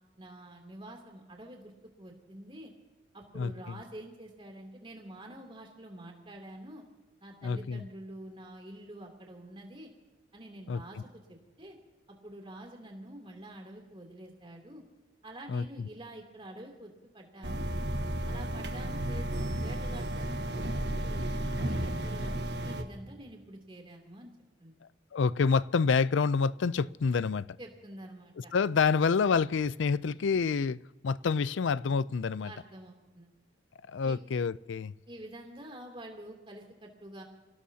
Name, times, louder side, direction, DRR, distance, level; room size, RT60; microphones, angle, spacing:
voice 1, 0.2-2.7 3.1-6.8 7.2-9.9 10.3-11.8 12.2-14.8 15.2-17.7 18.3-22.3 22.6-24.3 24.6-24.7 27.6-28.5 32.4-33.3 34.0-34.2 35.1-37.2, right 1 dB, 25° right, 2.9 m, -47 dB
voice 2, 3.3-3.8 7.4-7.8 10.7-10.8 15.5-15.6 25.1-27.5 28.5-30.8 31.0-32.5 33.9-34.9, left 5 dB, 70° left, 0.4 m, -27 dB
sound 1, 17.4-22.8, right 1 dB, 55° right, 1.3 m, -33 dB
27.5 x 17.0 x 2.8 m
head